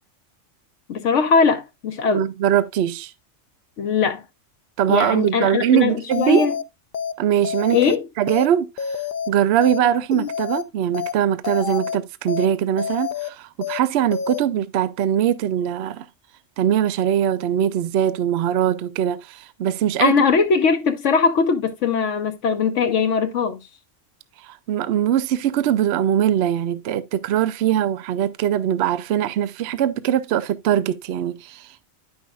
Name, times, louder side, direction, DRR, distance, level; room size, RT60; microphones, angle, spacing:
voice 1, 0.9-2.2 3.8-4.2 4.9-6.5 7.7-8.0 20.0-23.6, left 5 dB, 75° left, 1.1 m, -20 dB
voice 2, 2.1-3.1 4.8-6.5 7.2-9.0 9.3-16.1 16.6-20.2 24.4-31.9, right 10 dB, 65° right, 0.8 m, -21 dB
Bitcrushed Melody Dry, 6.1-6.6 6.9-7.1 7.4-8.0 8.3-8.5 8.8-9.3 9.6-9.8 10.1-10.6 10.9-11.1 11.4-12.0 12.3-12.5 12.8-13.3 13.6-13.8 14.1-14.4, left 8 dB, 60° left, 0.6 m, -28 dB
9.5 x 6.2 x 2.3 m
omnidirectional pair, 1.3 m